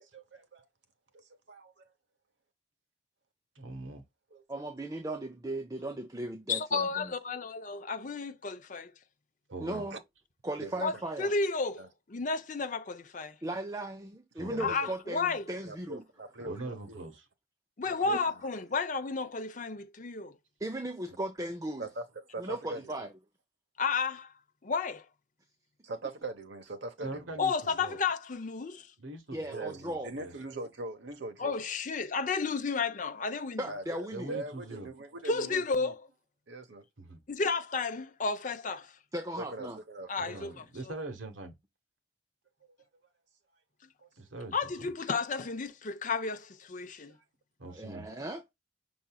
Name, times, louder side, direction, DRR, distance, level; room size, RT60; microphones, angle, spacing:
voice 1, 0.1-0.7 1.1-1.8 4.3-4.4 9.9-10.0 10.6-11.0 11.8-11.9 14.5-15.2 15.7-17.1 17.8-18.2 21.8-22.9 25.8-27.4 29.5-31.5 33.7-35.9 36.5-36.8 39.4-40.5 44.0-44.1 47.1-47.2 47.7-47.8, right 2 dB, 65° right, 1.1 m, -42 dB
voice 2, 3.5-4.0 9.5-9.8 14.4-14.7 16.4-17.2 27.0-28.0 29.0-30.3 34.1-34.9 37.0-37.2 40.2-41.5 44.2-44.9 47.6-48.1, right 2 dB, 85° right, 1.5 m, -42 dB
voice 3, 4.5-7.1 9.6-10.0 10.4-11.3 13.4-16.0 18.1-18.2 20.6-21.9 22.4-23.1 29.3-30.1 33.6-34.4 39.1-39.8 47.7-48.4, right 1 dB, 20° right, 0.6 m, -37 dB
voice 4, 6.5-8.9 10.8-13.4 14.6-15.4 17.8-20.4 23.8-24.3 24.6-25.1 27.4-28.9 31.4-33.6 35.3-36.0 37.3-39.0 40.1-40.9 44.5-47.2, left 4 dB, 40° left, 0.6 m, -32 dB
5.9 x 3.9 x 2.3 m
head